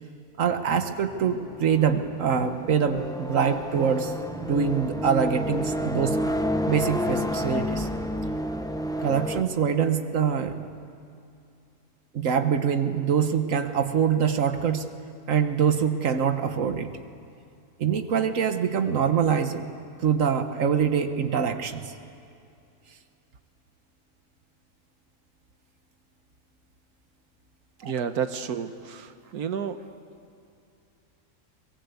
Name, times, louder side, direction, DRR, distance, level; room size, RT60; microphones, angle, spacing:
voice 1, 0.4-4.1 4.4-6.2 6.7-7.9 9.0-10.6 12.1-14.9 15.3-16.9 17.8-19.6 20.0-21.9 27.8-28.1, right 7 dB, 60° right, 9 dB, 1.5 m, -24 dB
sound 1, 1.0-9.4, equal, 5° left, 0.4 m, -30 dB
voice 2, 27.8-29.8, right 7 dB, 80° right, 9 dB, 1.4 m, -31 dB
23.0 x 21.0 x 8.3 m, 2.5 s
omnidirectional pair, 1.6 m